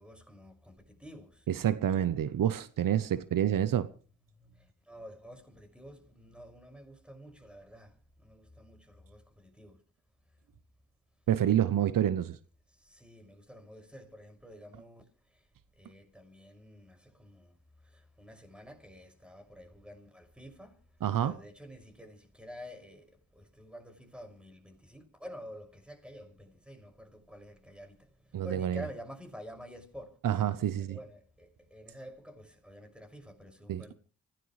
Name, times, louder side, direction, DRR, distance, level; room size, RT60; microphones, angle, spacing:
voice 1, 0.0-1.4 4.4-4.5 4.9-7.9 8.2-9.8 12.8-15.0 15.8-17.5 18.2-20.8 21.2-28.0 28.4-30.2 30.9-33.9, equal, 5° right, 6.0 m, -49 dB
voice 2, 1.5-3.9 11.3-12.4 21.0-21.3 28.3-28.8 30.2-31.0 33.7-33.8, right 10 dB, 75° right, 0.9 m, -28 dB
26.0 x 17.0 x 3.2 m
supercardioid pair, 45°, 33 cm